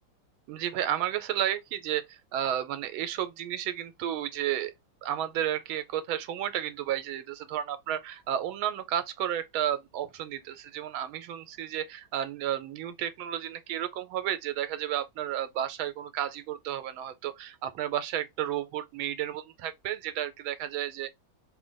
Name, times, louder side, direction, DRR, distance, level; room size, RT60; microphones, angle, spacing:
voice 1, 0.5-4.7 5.0-21.1, right 11 dB, 90° right, 1.4 m, -32 dB
3.4 x 2.2 x 3.8 m
omnidirectional pair, 2.2 m